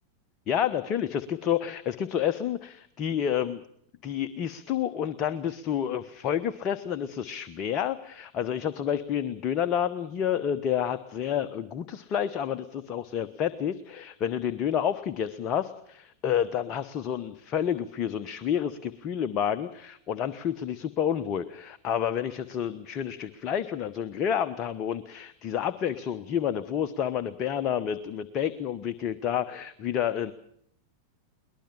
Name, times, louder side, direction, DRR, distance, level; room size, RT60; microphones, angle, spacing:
voice 1, 0.5-3.6 4.0-30.3, left 9 dB, 35° left, 11 dB, 1.2 m, -29 dB
22.5 x 20.0 x 7.2 m, 0.69 s
figure-of-eight pair, 90°, 0 cm